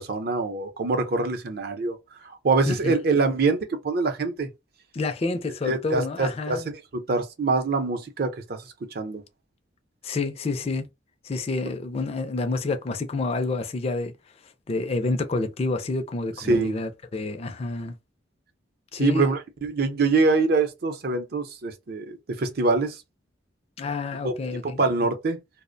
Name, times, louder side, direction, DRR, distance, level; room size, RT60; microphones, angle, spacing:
voice 1, 0.0-2.0 2.2-4.5 5.7-6.6 6.9-8.6 8.9-9.2 16.4-16.8 19.0-23.0 24.2-24.3 24.6-25.4, right 3 dB, 55° right, 0.6 m, -24 dB
voice 2, 2.7-3.0 4.9-6.6 10.0-10.9 11.2-14.1 14.7-18.0 18.9-19.4 23.8-25.1, left 3 dB, 35° left, 0.4 m, -28 dB
2.4 x 2.1 x 2.5 m
head